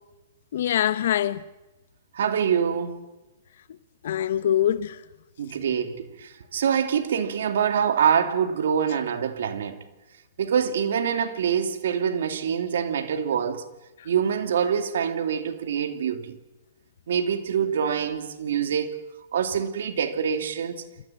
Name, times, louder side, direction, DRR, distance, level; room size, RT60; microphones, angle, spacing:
voice 1, 0.5-1.4 3.6-3.7 4.0-5.1 5.5-5.6 14.0-14.1, left 11 dB, 65° left, 0.8 m, -24 dB
voice 2, 2.1-3.0 5.4-9.8 10.4-13.6 14.0-16.4 17.1-19.0 19.3-20.8, right 7 dB, 75° right, 2.8 m, -25 dB
27.0 x 15.0 x 8.7 m
hypercardioid pair, 140°, 0 cm